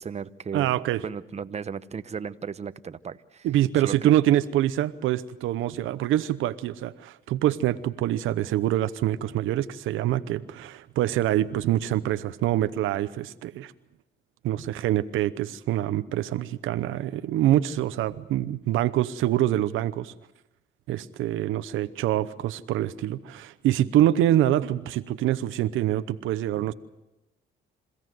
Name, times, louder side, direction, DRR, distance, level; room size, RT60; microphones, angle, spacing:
voice 1, 0.0-0.7 1.0-3.5 3.8-4.1, right 6 dB, 35° right, 12 dB, 0.9 m, -35 dB
voice 2, 0.5-1.0 3.4-13.7 14.4-20.1 20.9-26.7, right 13 dB, 90° right, 14 dB, 0.8 m, -25 dB
27.5 x 16.5 x 7.9 m, 0.96 s
cardioid pair, 90°, 20 cm